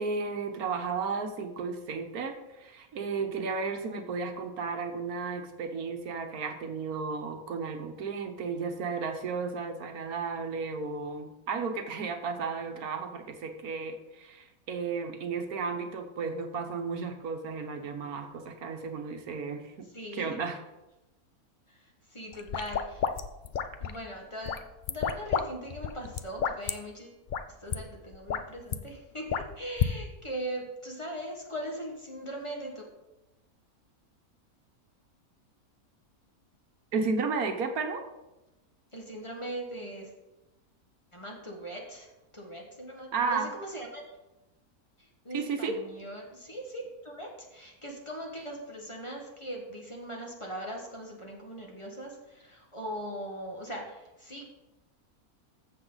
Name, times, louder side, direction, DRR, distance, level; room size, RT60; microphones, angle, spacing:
voice 1, 0.0-20.6 36.9-38.1 43.1-43.5 45.3-45.8, right 4 dB, 75° right, 5 dB, 1.5 m, -33 dB
voice 2, 19.9-20.3 22.1-23.0 23.8-27.2 27.6-32.7 38.9-40.1 41.1-42.1 42.3-44.0 45.2-54.5, right 1 dB, 20° left, 0 dB, 1.7 m, -40 dB
sound 1, 22.3-24.0 24.5-25.5 25.7-26.7 27.3-27.4 27.7-27.8 28.1-28.8 29.3-29.9, left 7 dB, 75° left, 0.4 m, -30 dB
14.0 x 7.1 x 4.0 m, 1.0 s
omnidirectional pair, 1.6 m